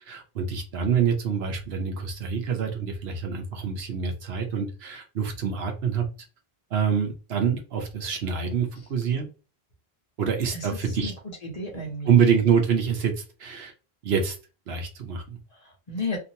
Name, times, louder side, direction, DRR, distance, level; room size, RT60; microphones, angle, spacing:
voice 1, 0.1-6.0 6.7-9.3 10.2-11.1 12.1-13.7 14.0-14.4 14.7-15.4, right 7 dB, 75° right, 3 dB, 1.0 m, -26 dB
voice 2, 10.5-11.1 11.4-12.2 15.5-16.2, left 2 dB, 40° left, 0 dB, 0.9 m, -33 dB
2.9 x 2.5 x 2.7 m, 0.33 s
omnidirectional pair, 1.1 m